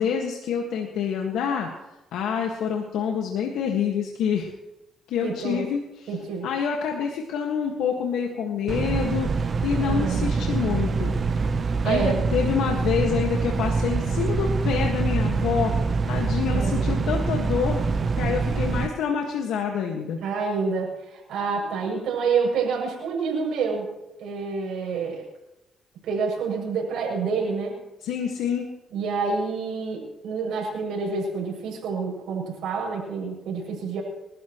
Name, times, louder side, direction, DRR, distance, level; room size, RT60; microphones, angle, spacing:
voice 1, 0.0-1.7 2.1-4.5 5.1-6.1 6.4-11.4 11.8-15.7 16.1-17.8 18.2-20.2 28.0-28.7, left 7 dB, 85° left, 1 dB, 1.7 m, -27 dB
voice 2, 5.2-5.6 6.1-6.5 9.8-10.3 11.8-12.2 16.5-17.0 20.2-23.9 24.2-25.2 26.0-27.8 28.9-34.0, right 5 dB, 85° right, -3 dB, 7.2 m, -28 dB
sound 1, 8.7-18.9, right 4 dB, 45° right, 0.9 m, -25 dB
29.0 x 13.0 x 3.1 m, 0.96 s
cardioid pair, 90°, 0 cm